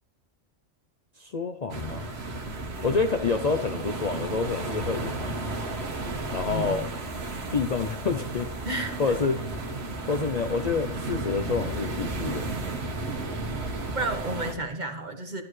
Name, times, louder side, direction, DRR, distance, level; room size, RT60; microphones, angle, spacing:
voice 1, 1.2-2.1 2.8-5.4 6.3-6.8 7.5-8.5 9.0-9.4 10.1-12.4, left 4 dB, 45° left, 6 dB, 0.6 m, -28 dB
sound 1, 1.7-14.5, right 2 dB, 60° right, 1.5 m, -33 dB
voice 2, 6.4-6.9 8.6-9.1 13.9-15.4, right 2 dB, 40° right, 5 dB, 1.3 m, -32 dB
12.5 x 11.5 x 3.2 m, 0.62 s
omnidirectional pair, 1.3 m